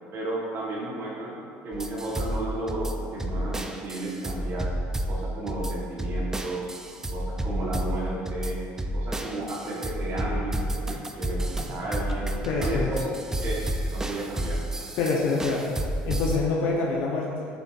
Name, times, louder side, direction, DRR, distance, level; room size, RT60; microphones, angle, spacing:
voice 1, 0.1-4.7 5.1-6.7 7.1-8.6 8.9-12.3 12.6-13.1 13.4-14.6, right 1 dB, 50° right, -4 dB, 1.2 m, -33 dB
sound 1, 1.7-16.4, right 1 dB, 10° right, 0.4 m, -31 dB
voice 2, 12.5-12.9 15.0-15.6 16.1-17.5, left 3 dB, 65° left, -3 dB, 0.8 m, -26 dB
9.2 x 4.1 x 2.4 m, 2.4 s
supercardioid pair, 100°, 5 cm